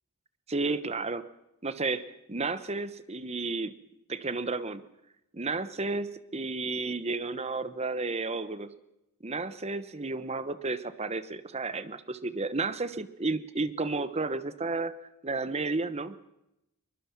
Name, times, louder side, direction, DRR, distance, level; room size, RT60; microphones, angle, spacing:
voice 1, 0.5-1.2 1.6-3.7 4.1-4.8 5.3-8.7 9.2-14.9 15.2-16.3, right 3 dB, 30° right, 13 dB, 1.0 m, -32 dB
23.0 x 21.0 x 6.0 m, 0.88 s
head